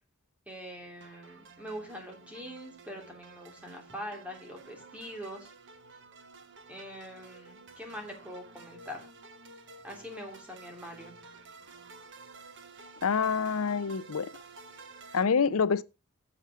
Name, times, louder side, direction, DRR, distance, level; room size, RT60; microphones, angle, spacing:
voice 1, 0.5-5.5 6.7-9.1 9.8-11.2, equal, 5° right, 2.9 m, -43 dB
sound 1, 1.0-15.2, right 3 dB, 55° right, 1.3 m, -52 dB
voice 2, 13.0-14.3 15.1-15.8, left 6 dB, 80° left, 0.6 m, -26 dB
8.9 x 7.7 x 4.9 m
head